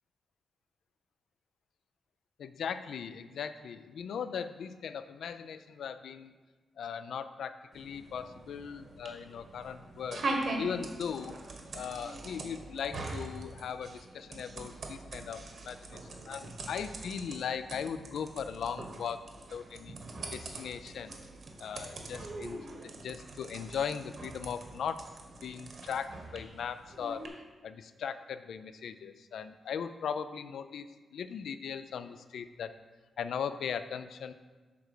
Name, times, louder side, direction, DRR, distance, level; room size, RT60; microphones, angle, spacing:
voice 1, 2.4-6.3 6.8-10.3 10.6-11.4 11.7-19.2 19.5-20.0 20.3-21.1 21.6-22.7 23.0-25.0 25.4-27.3 27.6-30.9 31.1-32.7 33.2-34.3, left 7 dB, 80° left, 11 dB, 0.4 m, -38 dB
sound 1, 7.7-27.3, right 2 dB, 60° right, 1.4 m, -42 dB
7.2 x 4.5 x 6.7 m, 1.4 s
cardioid pair, 105°, 0 cm